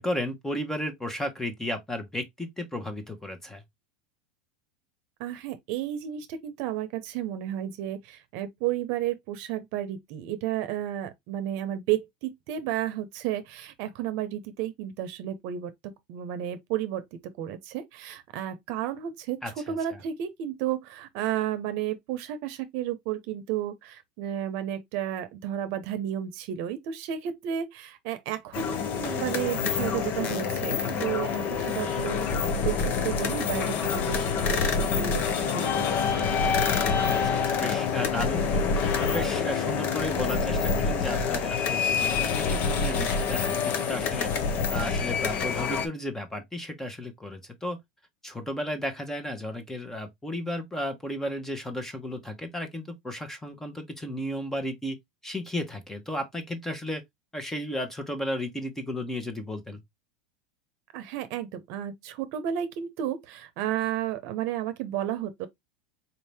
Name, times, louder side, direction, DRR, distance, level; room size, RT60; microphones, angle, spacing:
voice 1, 0.0-3.6 19.4-20.0 37.1-44.3 44.7-47.8 48.2-55.0 55.2-57.0 57.3-59.8, left 1 dB, 10° left, 1.0 m, -34 dB
voice 2, 5.2-17.0 17.4-19.4 19.7-32.7 33.0-36.2 60.9-65.5, right 11 dB, 60° right, 0.8 m, -32 dB
sound 1, 28.5-45.9, left 5 dB, 45° left, 0.8 m, -27 dB
4.1 x 2.7 x 3.4 m
supercardioid pair, 125°, 5 cm